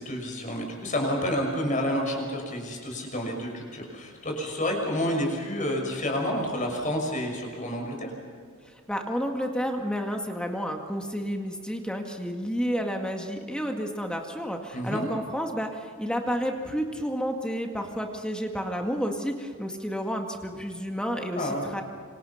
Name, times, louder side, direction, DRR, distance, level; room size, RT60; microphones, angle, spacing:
voice 1, 0.0-8.1 14.7-15.1 21.3-21.6, equal, 35° left, 1 dB, 6.2 m, -29 dB
voice 2, 8.9-21.8, equal, 5° left, 3 dB, 2.0 m, -30 dB
27.5 x 26.0 x 5.8 m, 2.1 s
head